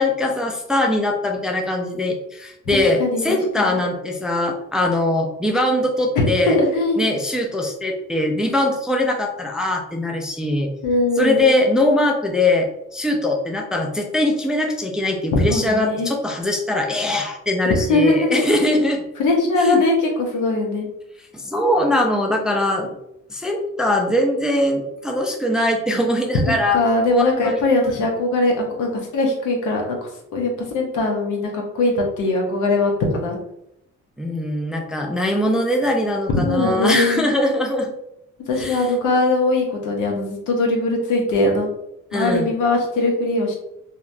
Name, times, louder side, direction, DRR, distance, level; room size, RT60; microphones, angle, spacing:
voice 1, 0.0-6.6 7.0-10.7 11.2-19.0 19.6-19.8 21.3-23.0 23.3-26.8 27.1-27.6 34.2-37.9 38.6-38.9 42.1-42.5, left 1 dB, ahead, 2 dB, 0.3 m, -21 dB
voice 2, 3.0-3.6 6.2-7.0 10.8-11.5 15.3-16.1 17.5-18.4 19.2-20.8 26.7-30.0 30.3-33.4 36.4-37.2 38.5-41.7 42.1-43.6, left 2 dB, 80° left, 1 dB, 0.8 m, -20 dB
2.8 x 2.2 x 2.5 m, 0.81 s
cardioid pair, 90°, 30 cm